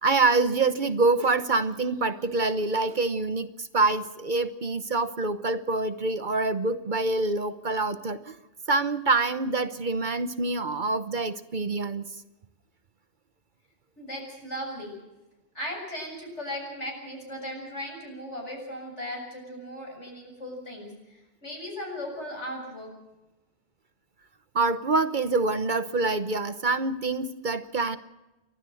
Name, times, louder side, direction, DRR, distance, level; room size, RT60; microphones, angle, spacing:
voice 1, 0.0-8.4 8.7-12.0 24.5-28.0, right 3 dB, 45° right, 12 dB, 1.0 m, -26 dB
voice 2, 14.0-14.9 15.5-22.9, equal, 80° left, 0 dB, 7.7 m, -37 dB
30.0 x 12.5 x 7.7 m, 1.0 s
omnidirectional pair, 1.2 m